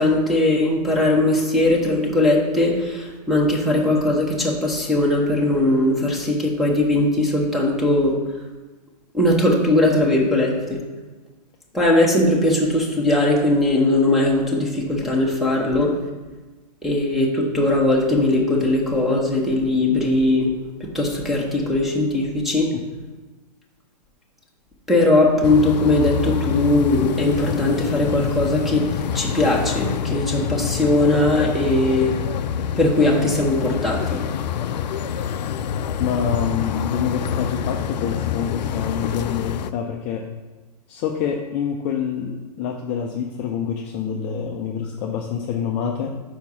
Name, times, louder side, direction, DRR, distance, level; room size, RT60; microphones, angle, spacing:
voice 1, 0.0-8.1 9.1-10.8 11.7-16.0 16.8-20.5 20.8-22.7 24.9-28.9 29.1-32.1 32.8-34.2, left 1 dB, ahead, -1 dB, 0.9 m, -19 dB
sound 1, 25.4-39.7, left 8 dB, 85° left, 0.4 m, -26 dB
voice 2, 36.0-40.3 40.9-46.2, left 7 dB, 25° left, 1 dB, 0.4 m, -26 dB
4.8 x 4.5 x 5.5 m, 1.2 s
hypercardioid pair, 150°, 21 cm